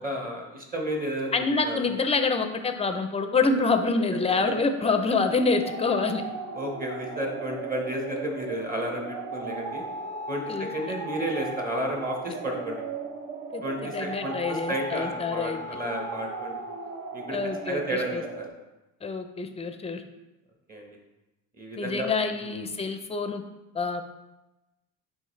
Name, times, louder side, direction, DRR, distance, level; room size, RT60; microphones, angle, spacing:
voice 1, 0.0-1.8 6.5-9.8 10.3-10.4 10.7-12.8 13.6-16.6 17.1-17.4 17.7-18.5 20.7-20.9 21.6-22.1 22.4-22.5, right 1 dB, 25° right, 0 dB, 1.3 m, -32 dB
voice 2, 1.3-6.2 10.5-10.7 13.5-15.6 17.3-18.2 19.0-20.0 21.8-23.4 23.7-24.0, left 4 dB, 15° left, 7 dB, 0.5 m, -26 dB
sound 1, 3.2-18.5, right 3 dB, 55° right, 1.0 m, -37 dB
9.5 x 3.2 x 3.2 m, 1.0 s
cardioid pair, 100°, 37 cm